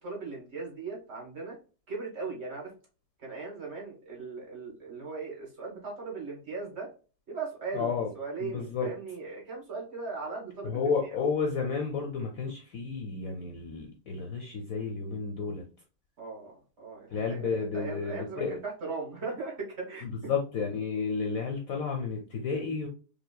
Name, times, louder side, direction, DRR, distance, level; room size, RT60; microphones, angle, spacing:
voice 1, 0.0-1.6 1.9-2.7 3.2-6.9 7.3-10.9 16.2-20.1, right 4 dB, 40° right, -2 dB, 1.6 m, -38 dB
voice 2, 7.7-8.1 8.4-8.9 10.6-15.6 17.1-18.6 20.0-22.9, left 5 dB, 65° left, 2 dB, 1.0 m, -31 dB
5.0 x 2.5 x 2.2 m, 0.35 s
omnidirectional pair, 1.8 m